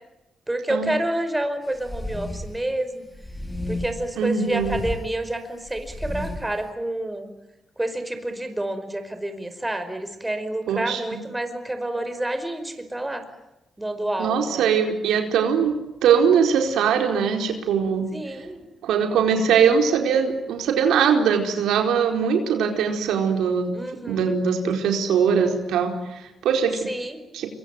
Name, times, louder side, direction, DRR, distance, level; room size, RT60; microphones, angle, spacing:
voice 1, 0.5-3.0 3.7-7.3 7.8-13.2 13.8-14.7 18.1-18.6 23.7-24.4 26.8-27.2, right 1 dB, 10° right, 8 dB, 5.2 m, -29 dB
sound 1, 1.8-2.6 3.1-4.1 4.5-5.0 5.6-6.5, left 1 dB, 15° left, 5.9 m, -32 dB
voice 2, 4.2-4.8 10.7-11.0 14.2-15.7 16.0-18.1 18.8-23.7 24.1-26.9 27.3-27.5, right 7 dB, 90° right, 4 dB, 4.5 m, -21 dB
26.5 x 23.5 x 9.1 m, 0.96 s
cardioid pair, 90°, 0 cm